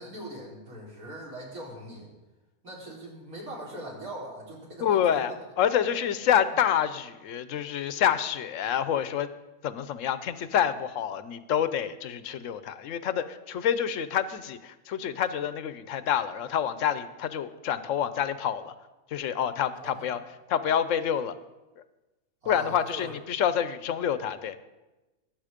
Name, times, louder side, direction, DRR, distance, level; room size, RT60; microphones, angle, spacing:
voice 1, 0.0-2.1 2.6-5.4 19.8-20.1 22.4-23.1, right 1 dB, 65° right, -4 dB, 4.2 m, -41 dB
voice 2, 4.8-9.3 9.6-18.7 19.1-21.3 21.8-21.9 22.4-24.6, left 9 dB, 60° left, 13 dB, 1.1 m, -27 dB
21.0 x 7.9 x 5.1 m, 1.1 s
omnidirectional pair, 1.6 m